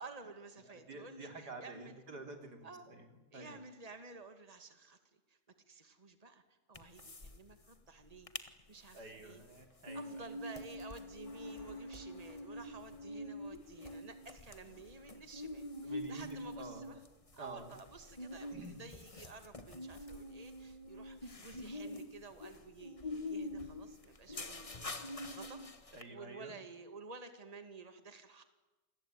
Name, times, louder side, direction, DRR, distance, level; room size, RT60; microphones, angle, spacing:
voice 1, 0.0-2.0 2.6-2.9 3.3-5.4 5.7-8.3 8.7-9.4 9.9-17.0 17.3-24.9 25.3-28.4, right 3 dB, 25° right, 8 dB, 2.3 m, -52 dB
voice 2, 0.9-3.6 8.9-10.2 15.8-16.9 17.4-17.7 18.5-18.8 25.9-26.5, right 2 dB, 90° right, 5 dB, 4.0 m, -50 dB
sound 1, 6.7-7.4 7.6-7.7 8.1-8.5 8.9-26.0, left 1 dB, 20° left, 1.5 m, -45 dB
sound 2, 11.2-14.0, left 3 dB, 45° left, 3.3 m, -63 dB
28.5 x 22.0 x 9.3 m, 1.1 s
omnidirectional pair, 1.7 m